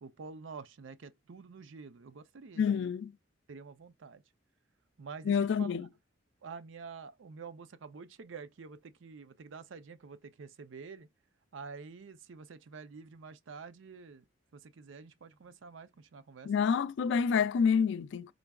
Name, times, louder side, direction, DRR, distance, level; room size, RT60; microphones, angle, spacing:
voice 1, 0.0-2.9 3.5-4.2 5.0-5.7 6.4-11.1 11.5-14.2 14.5-16.5, right 5 dB, 80° right, 0.5 m, -48 dB
voice 2, 2.6-3.1 5.2-5.9 16.4-18.3, left 6 dB, 65° left, 0.3 m, -28 dB
3.8 x 3.4 x 2.3 m
head